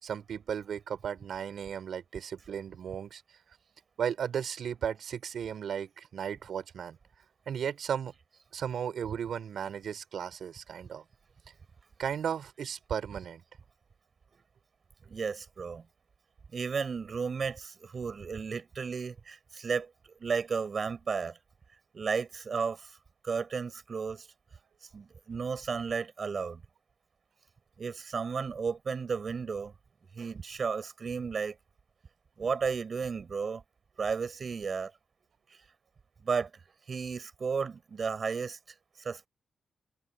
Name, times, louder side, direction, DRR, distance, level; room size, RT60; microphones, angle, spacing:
voice 1, 0.0-3.2 4.0-7.0 7.5-8.2 8.5-11.0 12.0-13.4, right 8 dB, 80° right, 5.5 m, -35 dB
voice 2, 15.1-15.8 16.5-21.4 21.9-22.9 23.2-24.3 24.9-26.6 27.8-29.7 30.1-31.6 32.4-33.6 34.0-34.9 36.2-36.5 36.9-38.6 39.0-39.3, right 5 dB, 55° right, 5.6 m, -33 dB
cardioid pair, 85°, 0 cm